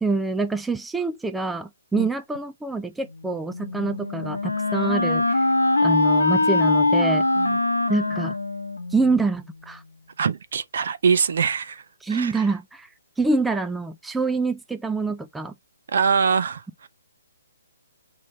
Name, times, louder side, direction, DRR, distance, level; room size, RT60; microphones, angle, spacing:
voice 1, 0.0-5.4 5.8-7.3 7.9-8.3 8.9-9.8 12.0-12.9 13.2-15.5, right 3 dB, 5° right, 0.3 m, -26 dB
Wind instrument woodwind instrument, 3.5-9.3, left 2 dB, 85° left, 0.9 m, -22 dB
voice 2, 10.2-11.8 12.1-12.4 15.9-16.9, right 6 dB, 60° right, 0.7 m, -23 dB
5.0 x 3.0 x 2.9 m
hypercardioid pair, 145°, 0 cm